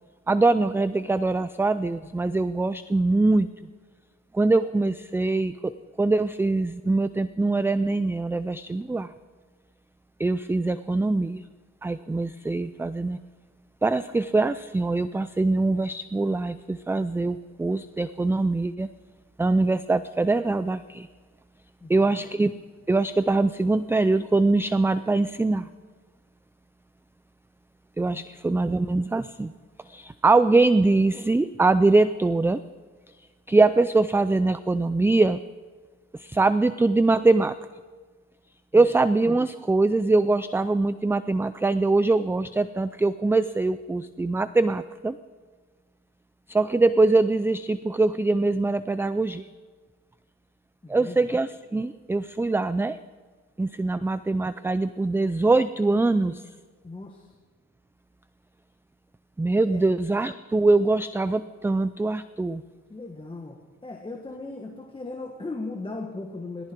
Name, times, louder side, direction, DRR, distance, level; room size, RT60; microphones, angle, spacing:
voice 1, 0.3-3.5 4.3-9.1 10.2-11.4 11.8-13.2 13.8-18.9 19.4-21.1 21.9-22.5 22.9-25.7 28.0-29.5 29.9-32.6 33.5-35.4 36.1-37.5 38.7-45.2 46.5-49.4 50.9-53.0 53.6-56.4 59.4-62.6, right 3 dB, 10° right, 14 dB, 0.4 m, -23 dB
voice 2, 21.8-22.2 28.1-28.2 38.7-38.9 50.8-51.3 56.8-57.3 59.7-59.8 62.9-66.7, left 3 dB, 15° left, 2 dB, 1.7 m, -38 dB
18.0 x 15.5 x 4.7 m, 1.4 s
cardioid pair, 90°, 30 cm